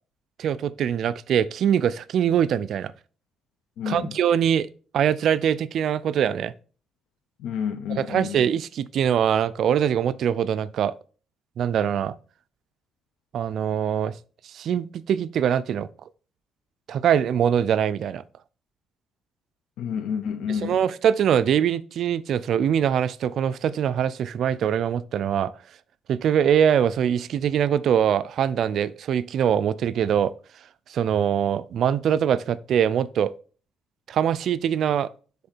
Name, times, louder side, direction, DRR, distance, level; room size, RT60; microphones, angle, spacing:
voice 1, 0.4-2.9 3.9-4.7 4.9-6.5 8.0-10.9 11.6-12.1 13.3-14.1 14.4-15.9 16.9-18.2 20.5-25.5 26.1-30.3 30.9-33.3 34.1-35.1, right 9 dB, 70° right, 0.4 m, -23 dB
voice 2, 3.8-4.2 7.4-8.4 19.8-20.8, left 7 dB, 90° left, 0.6 m, -29 dB
7.5 x 3.6 x 4.4 m
cardioid pair, 90°, 0 cm